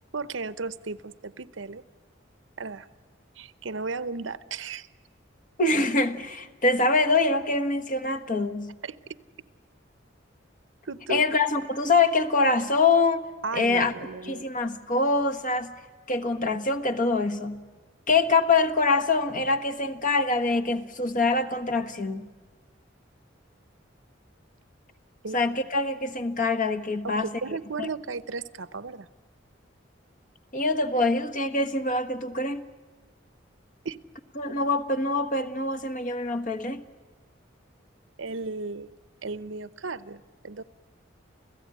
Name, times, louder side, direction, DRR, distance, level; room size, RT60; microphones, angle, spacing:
voice 1, 0.1-1.8 2.6-2.9 3.4-4.9 8.8-9.0 10.8-11.3 13.4-14.5 25.2-25.4 27.0-29.1 33.8-34.0 38.2-38.9 39.2-40.6, right 4 dB, 90° right, 15 dB, 0.9 m, -35 dB
voice 2, 5.6-8.7 11.1-13.3 13.5-13.9 14.2-15.7 16.1-17.6 18.1-22.3 25.3-27.3 27.8-27.9 30.5-32.6 34.4-36.8, left 3 dB, 45° left, 10 dB, 1.3 m, -24 dB
29.5 x 16.0 x 9.0 m, 1.5 s
head